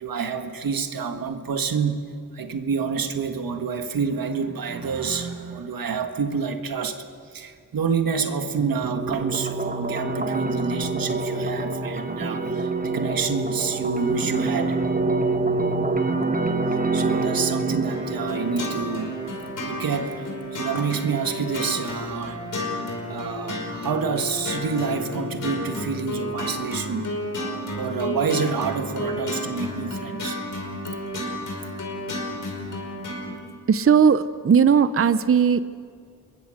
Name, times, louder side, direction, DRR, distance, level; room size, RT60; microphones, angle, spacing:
voice 1, 0.0-2.0 2.3-7.0 7.3-14.8 16.9-19.1 19.7-20.2 20.6-22.4 23.1-27.1 27.7-30.4, right 5 dB, 85° right, 6 dB, 1.7 m, -28 dB
sound 1, 8.6-19.6, right 3 dB, 25° right, 1.5 m, -26 dB
sound 2, 17.9-33.4, left 1 dB, 65° left, 5.0 m, -32 dB
voice 2, 33.7-35.6, right 7 dB, 40° right, 13 dB, 0.7 m, -17 dB
27.0 x 22.0 x 6.5 m, 2.1 s
wide cardioid pair, 80°, 34 cm